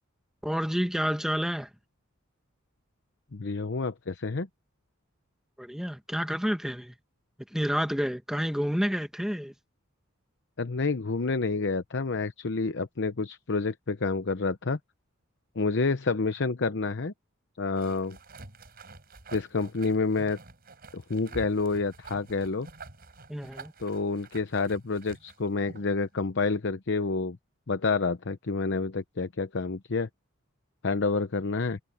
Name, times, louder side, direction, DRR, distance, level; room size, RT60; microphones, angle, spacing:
voice 1, 0.4-1.7 5.6-6.9 7.5-9.5 23.3-23.7, equal, ahead, 1.6 m, -29 dB
voice 2, 3.3-4.5 10.6-14.8 15.6-17.1 17.6-18.2 19.3-20.4 20.9-22.7 23.8-27.4 27.7-30.1 30.8-31.8, left 3 dB, 60° left, 0.8 m, -28 dB
sound 1, 17.8-26.0, right 3 dB, 45° right, 5.3 m, -48 dB
head